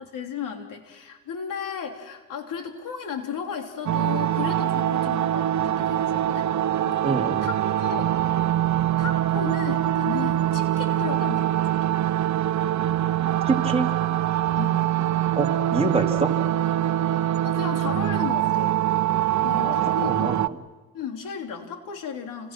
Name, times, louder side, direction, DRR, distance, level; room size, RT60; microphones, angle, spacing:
voice 1, 0.0-6.5 6.8-7.0 7.4-8.1 9.0-12.1 14.6-14.9 17.4-18.8 19.4-20.6 20.9-22.5, left 6 dB, 85° left, 4 dB, 3.5 m, -34 dB
sound 1, 3.9-20.5, right 12 dB, 60° right, 1.0 m, -24 dB
voice 2, 7.0-7.4 13.4-13.9 15.4-16.3 19.6-20.4, right 3 dB, 20° right, 1 dB, 3.3 m, -26 dB
30.0 x 27.0 x 6.2 m, 1.3 s
cardioid pair, 100°, 32 cm